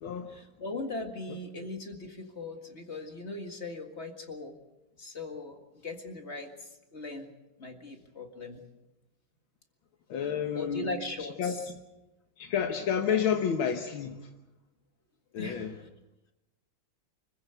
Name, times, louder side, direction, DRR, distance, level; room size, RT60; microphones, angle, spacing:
voice 1, 0.3-4.6 5.0-7.3 7.6-8.6 10.5-11.7 15.4-15.9, left 2 dB, 35° left, 5 dB, 2.0 m, -39 dB
voice 2, 10.1-10.9 11.4-11.6 12.4-14.2 15.3-15.7, left 8 dB, 80° left, 5 dB, 2.0 m, -29 dB
25.0 x 15.5 x 8.0 m, 1.0 s
omnidirectional pair, 2.2 m